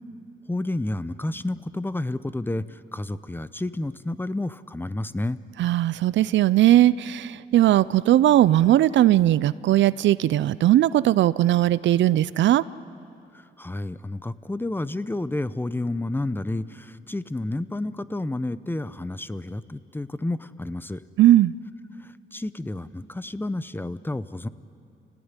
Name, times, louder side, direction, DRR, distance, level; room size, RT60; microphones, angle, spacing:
voice 1, 0.5-5.4 13.6-21.0 22.3-24.5, left 2 dB, 10° left, 14 dB, 0.8 m, -30 dB
voice 2, 5.6-12.6 21.2-21.5, right 13 dB, 70° right, 18 dB, 0.5 m, -19 dB
29.0 x 18.5 x 9.8 m, 2.6 s
cardioid pair, 90°, 20 cm